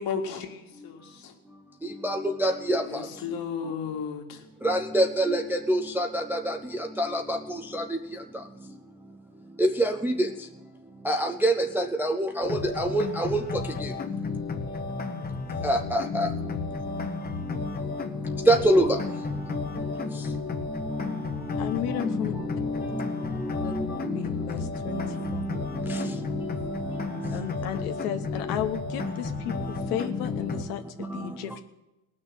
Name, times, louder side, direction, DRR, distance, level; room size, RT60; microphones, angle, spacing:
voice 1, 0.0-1.3 2.9-4.4, left 6 dB, 50° left, 3 dB, 2.3 m, -34 dB
voice 2, 2.0-2.8 4.6-6.6 7.0-7.4 9.6-10.1 11.1-12.5 12.8-13.4 15.6-16.3 18.5-19.0 21.5-21.7 22.6-22.8 23.6-23.7, right 1 dB, 5° right, 4 dB, 0.4 m, -24 dB
sound 1, 12.4-30.6, left 4 dB, 20° left, 1.0 m, -33 dB
voice 3, 21.6-22.4 23.6-23.7 24.1-25.4 27.3-31.6, left 11 dB, 75° left, 7 dB, 1.1 m, -34 dB
18.5 x 6.2 x 9.0 m, 0.98 s
supercardioid pair, 130°, 46 cm